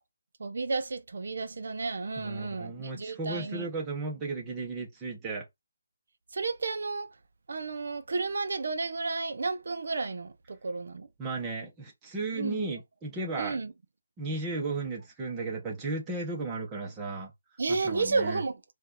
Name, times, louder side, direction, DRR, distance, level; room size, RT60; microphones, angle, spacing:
voice 1, 0.4-3.7 6.3-7.1 7.5-11.1 12.4-12.7 13.4-13.7 17.6-18.6, right 3 dB, 65° right, 0.8 m, -32 dB
voice 2, 2.2-5.5 11.2-13.6 14.2-17.3 17.7-18.4, right 3 dB, 15° right, 1.2 m, -35 dB
4.4 x 2.7 x 3.8 m
hypercardioid pair, 165°, 0 cm